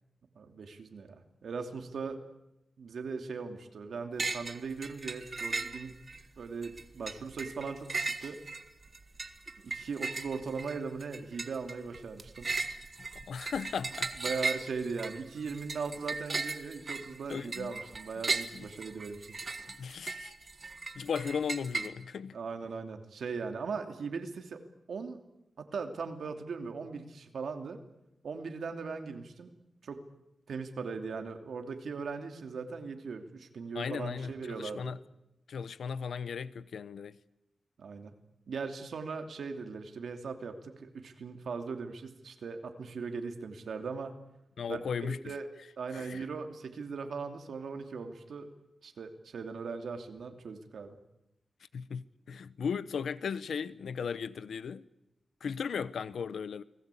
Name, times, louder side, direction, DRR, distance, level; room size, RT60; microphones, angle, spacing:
voice 1, 0.3-2.2 2.8-5.9 6.4-8.4 9.6-12.5 14.1-19.3 22.3-24.6 24.9-25.2 25.6-27.8 28.2-29.5 29.8-30.0 30.5-34.9 37.8-38.1 38.5-44.1 44.7-45.5 45.8-48.5 48.8-51.0, right 5 dB, 75° right, 2.9 m, -39 dB
sound 1, 4.2-4.6 4.8-6.2 6.6-21.9, right 3 dB, 35° right, 1.8 m, -37 dB
voice 2, 13.0-14.1 17.3-17.7 18.5-18.7 19.7-20.3 20.9-22.4 33.7-35.0 35.5-37.2 44.6-45.3 45.9-46.2 51.7-54.9 55.4-56.6, left 6 dB, 85° left, 0.9 m, -36 dB
29.5 x 20.5 x 8.5 m
wide cardioid pair, 135°, 0 cm